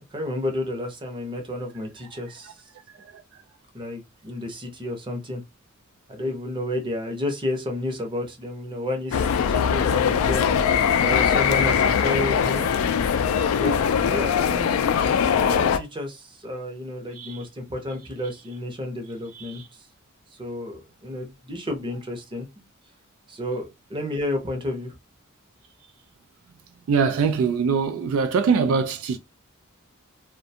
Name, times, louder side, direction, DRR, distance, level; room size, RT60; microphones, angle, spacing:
voice 1, 0.1-2.5 3.7-5.4 6.1-10.7 11.0-12.7 13.5-19.8 20.4-22.6 23.3-24.9, left 1 dB, 25° right, 0.7 m, -31 dB
sound 1, 9.1-15.8, left 7 dB, 80° left, 0.3 m, -21 dB
voice 2, 19.3-19.7 26.9-29.2, right 5 dB, 75° right, 0.3 m, -23 dB
2.4 x 2.2 x 2.7 m
head